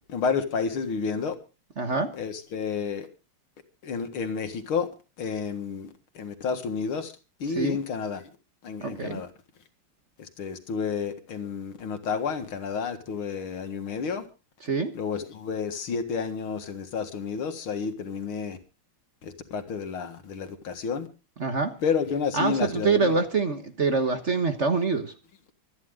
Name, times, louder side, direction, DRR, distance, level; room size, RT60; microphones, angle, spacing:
voice 1, 0.1-1.3 2.2-3.1 3.8-4.9 5.2-5.9 6.2-7.1 7.4-8.2 8.6-9.3 10.2-14.3 14.9-18.6 19.2-21.1 21.8-23.1, left 5 dB, 80° left, 2.5 m, -30 dB
voice 2, 1.8-2.1 7.5-7.8 8.8-9.2 14.6-14.9 21.4-21.8 22.3-25.1, right 4 dB, 40° right, 1.3 m, -25 dB
25.0 x 10.5 x 3.7 m
omnidirectional pair, 2.3 m